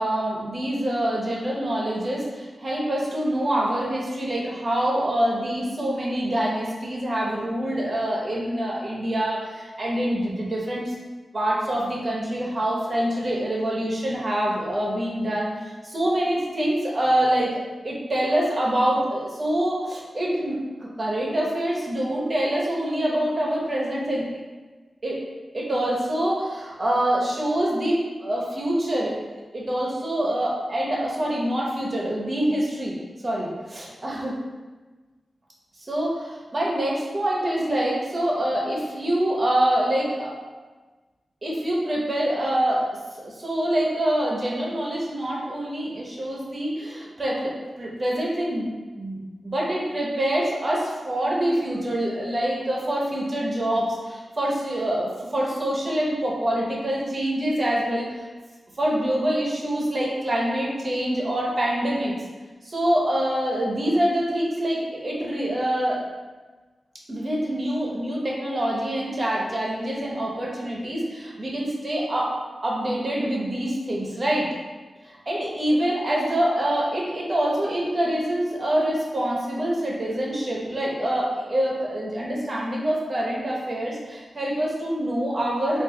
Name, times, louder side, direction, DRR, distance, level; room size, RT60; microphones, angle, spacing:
voice 1, 0.0-10.9 11.3-17.5 17.8-24.3 25.0-25.2 25.5-29.1 29.5-32.9 33.2-34.3 35.9-40.3 41.4-42.9 43.2-48.7 49.0-58.3 58.8-62.1 62.6-66.0 67.1-72.3 72.6-74.5 75.3-85.8, right 1 dB, 35° right, -4 dB, 0.9 m, -25 dB
3.9 x 2.5 x 3.7 m, 1.3 s
wide cardioid pair, 130°, 0 cm